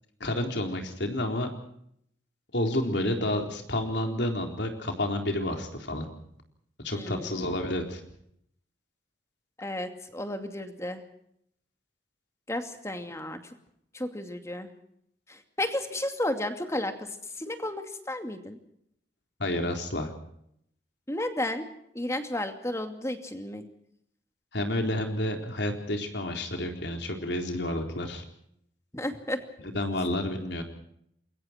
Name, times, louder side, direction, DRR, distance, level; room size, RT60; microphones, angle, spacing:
voice 1, 0.2-1.5 2.5-6.1 6.8-8.0 19.4-20.1 24.5-28.2 29.6-30.6, left 1 dB, 70° left, 3 dB, 4.0 m, -30 dB
voice 2, 6.9-7.4 9.6-11.0 12.5-13.4 13.9-14.7 15.3-17.1 17.4-18.6 21.1-21.7 21.9-23.6 28.9-29.4, left 1 dB, 15° left, 6 dB, 2.5 m, -33 dB
28.5 x 22.5 x 4.5 m, 0.72 s
head